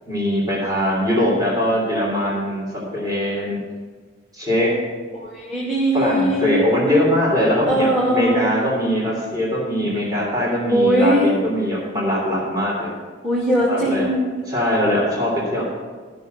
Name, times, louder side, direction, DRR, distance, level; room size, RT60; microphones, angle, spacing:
voice 1, 0.1-3.6 4.3-4.7 5.9-12.9 13.7-14.1 14.5-15.6, equal, 20° right, -5 dB, 3.1 m, -21 dB
voice 2, 5.1-6.7 7.7-8.5 10.7-11.3 13.2-14.3, right 1 dB, 5° right, -6 dB, 2.3 m, -20 dB
13.0 x 6.4 x 6.7 m, 1.5 s
head